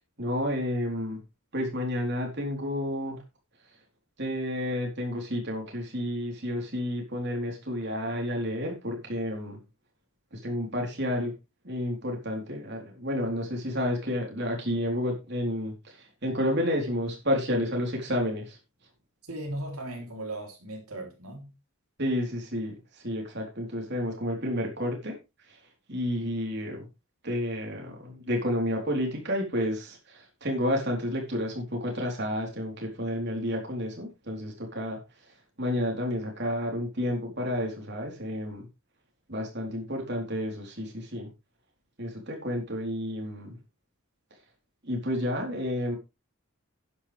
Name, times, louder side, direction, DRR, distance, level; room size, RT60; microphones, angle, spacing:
voice 1, 0.2-1.2 1.5-3.2 4.2-9.6 10.3-11.4 11.6-18.6 22.0-25.2 25.5-25.6 25.9-26.9 27.2-38.7 39.3-41.3 42.0-43.6 44.8-46.0, left 1 dB, 50° right, 4.0 m, -31 dB
voice 2, 19.3-21.5, right 1 dB, 80° right, 3.6 m, -37 dB
11.5 x 10.0 x 3.5 m
head